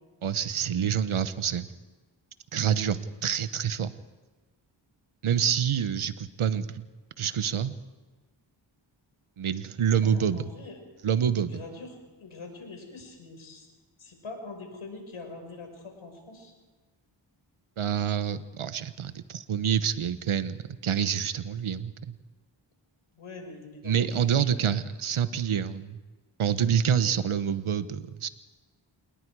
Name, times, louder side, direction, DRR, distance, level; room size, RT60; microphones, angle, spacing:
voice 1, 0.2-1.7 2.5-3.9 5.2-6.8 7.2-7.8 9.4-10.5 11.0-11.5 17.8-20.6 20.8-22.1 23.8-26.0 26.4-28.3, right 8 dB, 85° right, 13 dB, 1.1 m, -27 dB
voice 2, 10.0-10.8 11.5-13.7 14.0-16.5 23.1-24.7, left 3 dB, 80° left, 3 dB, 5.3 m, -44 dB
28.0 x 20.0 x 4.8 m, 1.3 s
cardioid pair, 60°, 48 cm